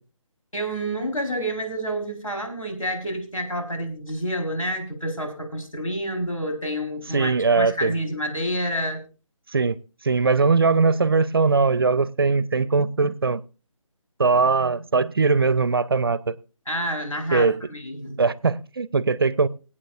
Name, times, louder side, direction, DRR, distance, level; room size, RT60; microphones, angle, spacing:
voice 1, 0.5-9.0 16.7-18.2, equal, 75° left, 4.4 m, -28 dB
voice 2, 7.1-7.9 9.5-9.8 10.0-13.4 14.2-16.3 17.3-17.6 18.2-19.5, right 4 dB, 45° right, 0.5 m, -20 dB
25.5 x 8.6 x 2.5 m
figure-of-eight pair, 150°, 17 cm